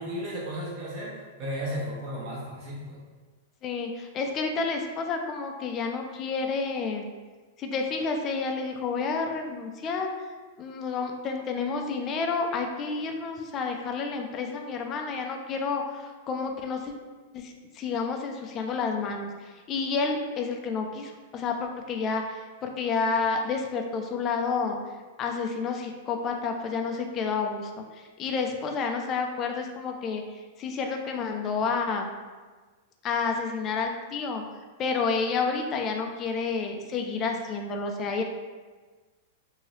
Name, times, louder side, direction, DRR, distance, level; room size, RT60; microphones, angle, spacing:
voice 1, 0.0-3.0, equal, 45° right, -5 dB, 1.1 m, -34 dB
voice 2, 3.6-7.1 7.6-10.1 10.6-16.9 17.3-19.3 19.7-24.8 25.2-30.2 30.6-32.1 33.0-34.4 34.8-38.2, left 4 dB, 30° left, 3 dB, 0.4 m, -30 dB
2.8 x 2.7 x 3.1 m, 1.4 s
supercardioid pair, 140°, 0 cm